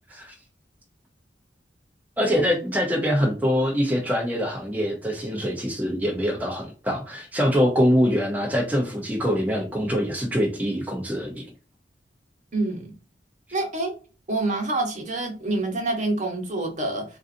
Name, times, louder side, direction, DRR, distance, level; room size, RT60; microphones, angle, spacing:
voice 1, 2.2-11.4, equal, 10° right, -2 dB, 0.7 m, -24 dB
voice 2, 12.5-12.9 13.5-13.9 14.3-17.0, right 2 dB, 45° right, 1 dB, 1.2 m, -26 dB
3.9 x 2.6 x 2.6 m, 0.35 s
head